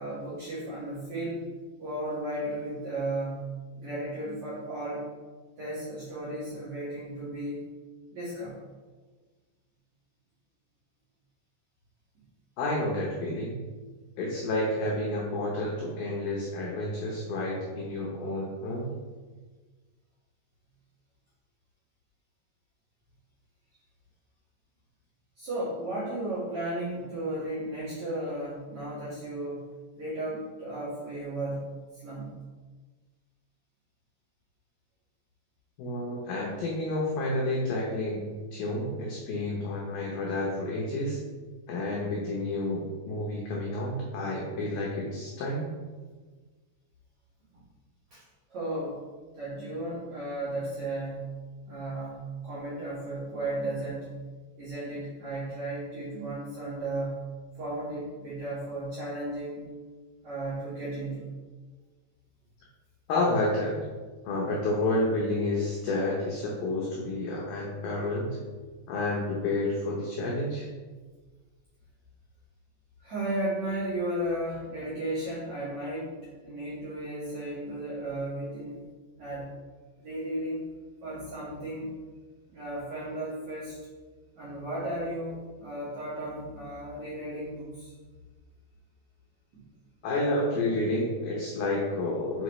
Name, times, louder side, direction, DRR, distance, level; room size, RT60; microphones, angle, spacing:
voice 1, 0.0-1.5 1.8-5.0 5.6-7.7 8.1-8.6 25.4-29.6 30.0-32.4 48.1-48.2 48.5-49.0 49.3-51.4 51.6-54.2 54.6-57.3 57.5-59.6 60.2-61.3 73.0-78.8 79.2-79.5 80.0-80.7 81.0-81.9 82.5-83.8 84.4-87.9, right 1 dB, 60° right, -10 dB, 2.0 m, -34 dB
voice 2, 12.6-13.6 14.2-18.9 35.8-38.3 38.5-41.2 41.7-45.7 63.1-63.8 64.3-68.4 68.9-70.7 90.0-92.4, left 2 dB, 85° left, -3 dB, 2.1 m, -30 dB
6.2 x 5.5 x 3.1 m, 1.4 s
omnidirectional pair, 5.5 m